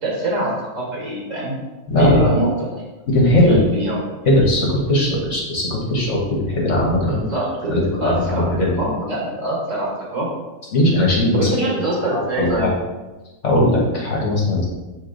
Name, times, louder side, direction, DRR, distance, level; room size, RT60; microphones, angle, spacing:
voice 1, 0.0-1.5 2.0-2.8 3.4-4.0 7.0-10.3 11.3-12.7, right 1 dB, 55° right, -5 dB, 2.0 m, -24 dB
voice 2, 1.9-2.2 3.1-3.5 4.2-6.2 6.5-7.2 7.7-8.8 10.7-11.5 12.1-12.7 13.4-14.6, left 1 dB, 50° left, -4 dB, 1.6 m, -18 dB
6.7 x 3.7 x 3.8 m, 1.2 s
omnidirectional pair, 1.6 m